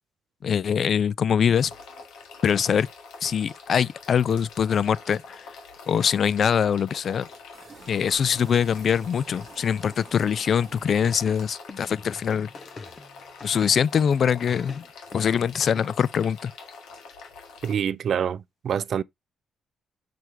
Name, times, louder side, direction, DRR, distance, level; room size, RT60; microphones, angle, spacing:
voice 1, 0.4-1.7 2.4-2.9 3.2-5.5 5.9-7.3 7.9-12.5 13.4-14.8 15.1-16.5, left 7 dB, 55° left, 0.3 m, -23 dB
sound 1, 1.5-17.7, left 4 dB, 85° left, 1.7 m, -45 dB
sound 2, 7.5-11.7, right 4 dB, 35° right, 1.1 m, -48 dB
sound 3, 11.0-14.1 14.5-15.8, left 4 dB, 35° left, 0.7 m, -43 dB
voice 2, 17.6-19.0, right 8 dB, 60° right, 0.4 m, -26 dB
6.1 x 4.6 x 3.3 m
cardioid pair, 90°, 0 cm